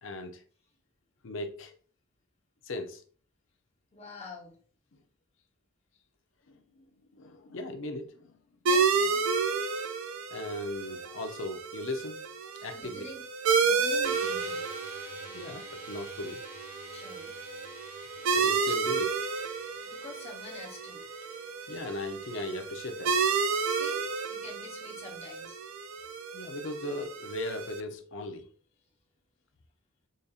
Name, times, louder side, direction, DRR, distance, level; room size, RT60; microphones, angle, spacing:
voice 1, 0.0-0.4 1.2-1.7 2.6-3.0 6.5-6.8 7.1-8.3 9.7-9.8 10.3-12.2 12.6-13.0 15.3-16.4 18.3-19.3 21.7-23.2 26.3-28.5, left 1 dB, 60° left, 0.6 m, -37 dB
voice 2, 3.9-4.5 8.7-9.2 12.7-13.2 13.6-14.6 16.9-17.4 19.9-21.0 23.6-24.0 24.3-25.6, left 2 dB, 30° left, 0.9 m, -46 dB
sound 1, 8.7-27.8, right 5 dB, 70° right, 0.4 m, -31 dB
sound 2, 14.0-26.5, right 1 dB, 10° right, 0.5 m, -51 dB
5.0 x 2.7 x 2.4 m
head